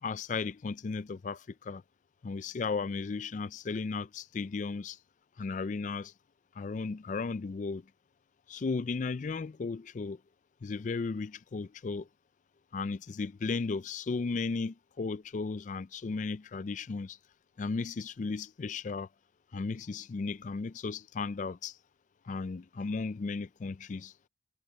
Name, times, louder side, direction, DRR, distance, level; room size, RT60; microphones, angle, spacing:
voice 1, 0.0-1.8 2.2-5.0 5.4-6.1 6.6-7.9 8.5-10.2 10.6-12.1 12.7-17.2 17.6-19.1 19.5-21.8 22.3-24.1, left 4 dB, 45° left, 0.4 m, -35 dB
head